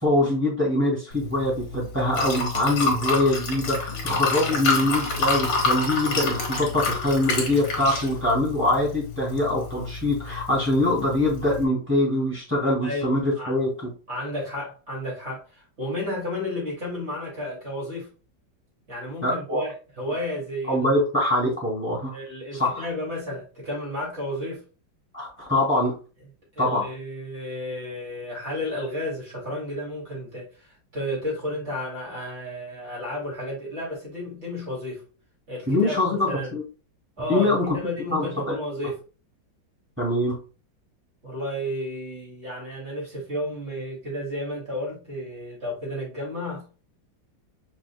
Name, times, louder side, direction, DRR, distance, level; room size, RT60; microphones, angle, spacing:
voice 1, 0.0-13.9 19.2-19.6 20.7-22.1 22.5-22.9 25.1-25.9 26.6-26.8 35.7-36.6 37.3-37.7 38.1-38.5 40.0-40.4, left 1 dB, 5° right, -4 dB, 2.6 m, -23 dB
Liquid, 1.1-11.6, left 4 dB, 80° left, 2.0 m, -28 dB
voice 2, 12.8-13.5 14.1-18.1 18.9-20.9 22.1-24.6 26.6-30.5 30.9-35.0 35.5-36.6 37.2-39.0 41.2-46.7, left 1 dB, 35° right, -5 dB, 2.9 m, -32 dB
5.2 x 4.2 x 2.3 m, 0.35 s
omnidirectional pair, 2.0 m